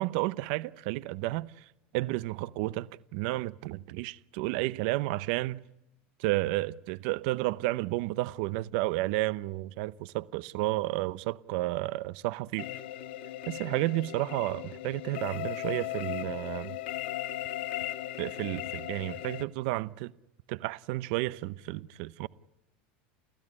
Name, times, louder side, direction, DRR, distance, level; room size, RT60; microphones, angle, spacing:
voice 1, 0.0-1.5 1.9-5.6 6.2-12.7 13.5-16.8 18.2-20.1 20.5-22.3, right 19 dB, 60° right, 0.8 m, -31 dB
sound 1, 12.6-19.4, left 14 dB, 80° left, 1.7 m, -37 dB
29.5 x 15.0 x 9.8 m
supercardioid pair, 145°, 6 cm